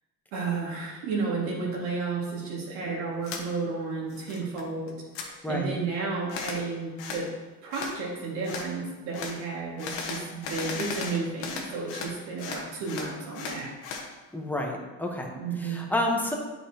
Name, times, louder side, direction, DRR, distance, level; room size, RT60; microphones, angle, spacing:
voice 1, 0.3-4.9 5.2-7.3 7.6-13.7 15.3-15.9, right 4 dB, 85° right, -3 dB, 2.2 m, -32 dB
sound 1, 3.2-3.4 3.9-4.6 4.9-5.3 6.3-6.6 7.0-7.3 7.7-7.9 8.4-8.7 9.1-9.4 9.8-12.1 12.4-14.1, left 5 dB, 85° left, 1.3 m, -36 dB
voice 2, 5.4-5.7 14.3-16.4, left 1 dB, 5° left, 1 dB, 1.1 m, -30 dB
8.5 x 5.5 x 2.9 m, 1.2 s
supercardioid pair, 100°, 43 cm